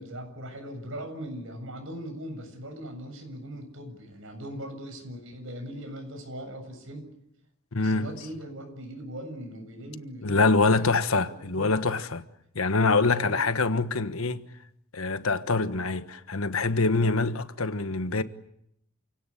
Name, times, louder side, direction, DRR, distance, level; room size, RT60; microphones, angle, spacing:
voice 1, 0.0-7.1 7.8-11.7 13.1-13.4, equal, 65° right, 7.5 m, -40 dB
voice 2, 7.7-8.1 10.2-12.2 12.5-14.5 14.9-18.2, left 3 dB, 80° left, 1.4 m, -25 dB
29.0 x 17.5 x 10.0 m
head